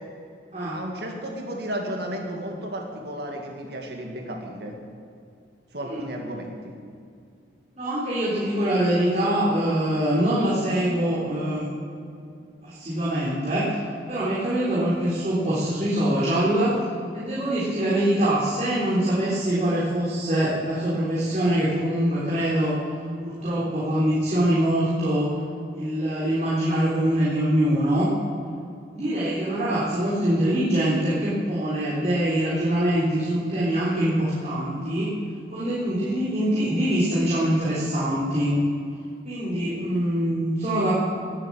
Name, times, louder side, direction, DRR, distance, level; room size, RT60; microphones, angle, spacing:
voice 1, 0.7-4.8 5.7-6.8, right 1 dB, 65° right, 1 dB, 2.1 m, -33 dB
voice 2, 7.8-11.7 12.6-13.8 14.1-16.8 17.1-22.8 23.2-25.3 25.7-28.1 28.9-35.1 35.5-38.6 39.2-41.0, right 1 dB, 40° right, -8 dB, 3.6 m, -24 dB
18.5 x 8.1 x 7.5 m, 2.5 s
head